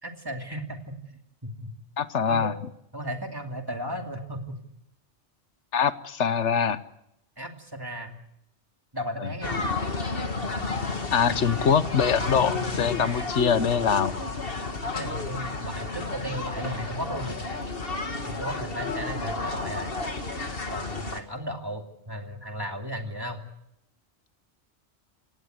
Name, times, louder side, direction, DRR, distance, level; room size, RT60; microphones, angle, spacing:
voice 1, 0.0-1.0 1.4-1.7 2.3-2.5 2.9-4.6 7.4-8.2 8.9-9.6 14.9-17.4 18.2-19.9 20.7-23.4, equal, 20° right, 3 dB, 2.7 m, -35 dB
voice 2, 2.0-2.5 5.7-6.8 11.1-14.1, left 7 dB, 90° left, 13 dB, 1.4 m, -23 dB
sound 1, 9.4-21.2, left 3 dB, 55° left, 2.2 m, -31 dB
28.0 x 18.0 x 8.0 m, 0.80 s
omnidirectional pair, 1.2 m